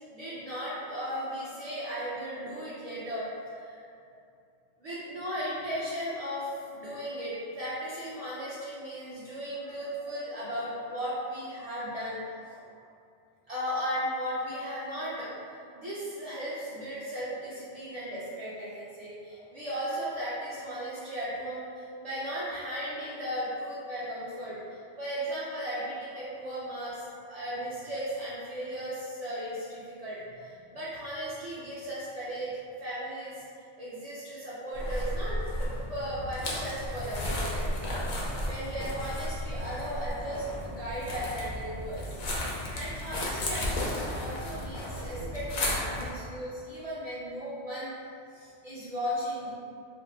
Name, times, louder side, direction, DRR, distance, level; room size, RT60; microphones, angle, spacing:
voice 1, 0.1-4.2 4.8-12.2 12.5-12.7 13.5-15.3 15.8-33.4 33.8-42.1 42.5-47.9 48.3-49.5, equal, 75° right, -10 dB, 0.3 m, -36 dB
sound 1, 34.7-46.1, left 1 dB, 70° left, 0.4 m, -34 dB
2.5 x 2.0 x 3.0 m, 2.4 s
omnidirectional pair, 1.2 m